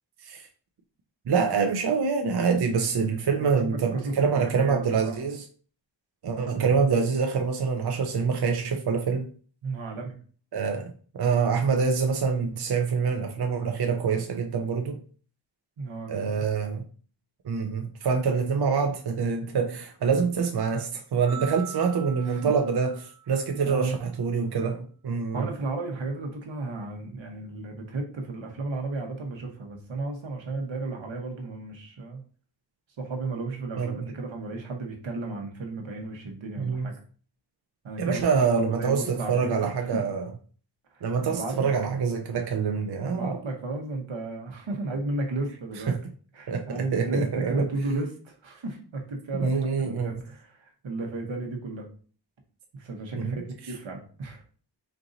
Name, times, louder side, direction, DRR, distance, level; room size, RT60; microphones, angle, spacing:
voice 1, 1.3-5.4 6.2-9.3 10.5-15.0 16.1-16.8 17.4-25.5 33.8-34.0 36.6-36.9 38.0-40.3 41.0-43.4 45.9-46.0 46.5-47.7 49.4-50.1 53.1-53.4, right 5 dB, 60° right, 0.6 m, -26 dB
voice 2, 3.4-5.2 9.6-10.1 15.8-16.4 22.3-22.5 23.6-24.0 25.3-32.2 33.0-36.9 37.8-39.5 39.9-40.0 41.3-41.7 43.0-46.0 46.3-51.9 52.7-54.4, right 3 dB, 90° right, 1.1 m, -33 dB
sound 1, 21.3-23.6, right 10 dB, 10° right, 0.6 m, -43 dB
4.5 x 2.6 x 3.9 m
wide cardioid pair, 80°, 45 cm